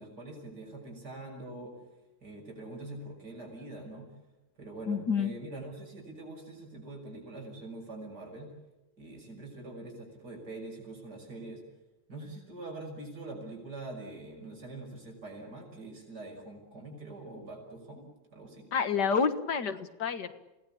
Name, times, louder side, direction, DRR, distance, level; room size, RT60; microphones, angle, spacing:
voice 1, 0.0-1.8 2.2-4.1 4.6-8.5 9.0-11.6 12.1-18.7, right 2 dB, 60° right, 1 dB, 6.6 m, -44 dB
voice 2, 4.9-5.3 18.7-20.3, left 6 dB, 65° left, 10 dB, 2.1 m, -29 dB
29.0 x 18.5 x 8.7 m, 1.1 s
omnidirectional pair, 2.0 m